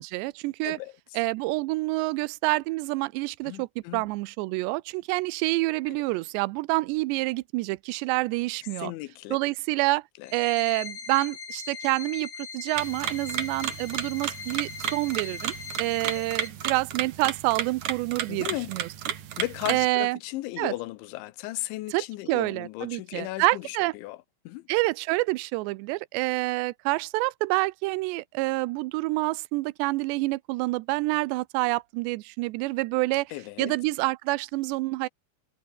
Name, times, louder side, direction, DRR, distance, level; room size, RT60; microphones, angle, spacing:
voice 1, 0.0-0.8 1.2-3.7 3.9-8.9 9.3-10.0 10.3-18.9 19.7-20.2 20.6-20.7 21.9-23.9 24.7-33.3 33.6-35.1, right 22 dB, 80° right, 2.6 m, -27 dB
voice 2, 0.6-1.2 3.4-4.1 5.9-6.0 8.8-9.4 10.2-10.3 16.1-16.2 18.3-18.7 19.0-24.7 33.3-33.7, left 18 dB, 80° left, 3.2 m, -36 dB
sound 1, 10.2-16.5, left 5 dB, 45° left, 5.8 m, -40 dB
sound 2, 12.8-19.9, right 10 dB, 60° right, 2.1 m, -33 dB
omnidirectional pair, 5.6 m